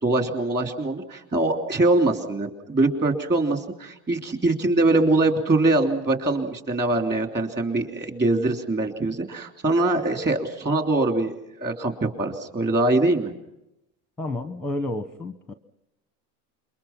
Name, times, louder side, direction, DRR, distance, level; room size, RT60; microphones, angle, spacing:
voice 1, 0.0-11.3 11.6-13.3, right 2 dB, 25° right, 4 dB, 3.2 m, -23 dB
voice 2, 14.2-15.5, left 2 dB, ahead, 10 dB, 0.8 m, -30 dB
28.0 x 23.5 x 5.9 m, 0.88 s
supercardioid pair, 125°, 45 cm